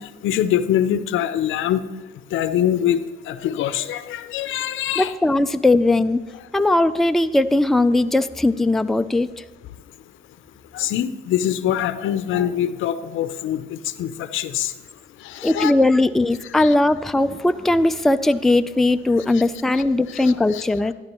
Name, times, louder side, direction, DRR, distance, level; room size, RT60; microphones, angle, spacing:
voice 1, 0.0-1.9 2.3-5.1 10.7-14.7 15.2-15.7 16.6-16.7 19.3-19.4 19.7-19.8 20.1-20.6, left 10 dB, 80° left, 12 dB, 0.6 m, -24 dB
voice 2, 5.0-6.2 6.5-9.3 15.4-20.9, left 2 dB, ahead, 9 dB, 0.3 m, -19 dB
13.0 x 10.5 x 3.0 m, 1.3 s
cardioid pair, 90°, 20 cm